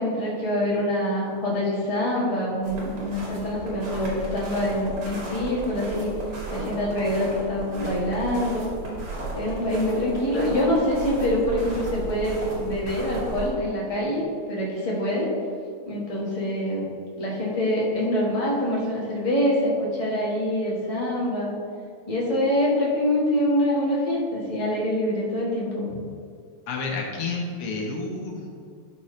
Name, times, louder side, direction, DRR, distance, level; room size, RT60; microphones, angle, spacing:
voice 1, 0.0-6.1 6.5-8.7 9.3-15.3 15.8-16.8 17.2-21.6 22.1-26.0, left 1 dB, 20° left, -5 dB, 1.5 m, -25 dB
sound 1, 2.6-13.5, right 2 dB, 85° right, 2.9 m, -34 dB
voice 2, 26.7-28.5, left 3 dB, 85° left, 0 dB, 2.1 m, -30 dB
11.5 x 5.3 x 3.3 m, 2.3 s
omnidirectional pair, 2.4 m